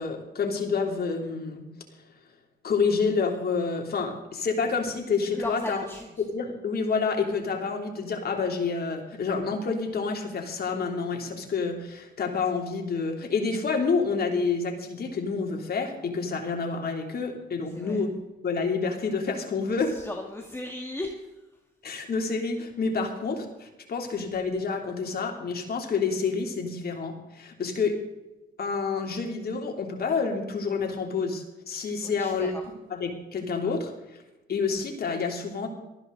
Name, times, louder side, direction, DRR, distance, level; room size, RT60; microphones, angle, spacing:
voice 1, 0.0-1.6 2.6-5.9 6.2-18.1 18.4-20.0 21.8-28.0 28.6-32.5 32.9-33.9 34.5-35.7, left 4 dB, 50° left, 3 dB, 3.1 m, -28 dB
voice 2, 5.3-6.1 17.7-18.0 19.9-21.3 32.0-32.6, left 1 dB, 10° left, 2 dB, 1.9 m, -36 dB
18.5 x 14.0 x 4.0 m, 1.0 s
cardioid pair, 90°, 20 cm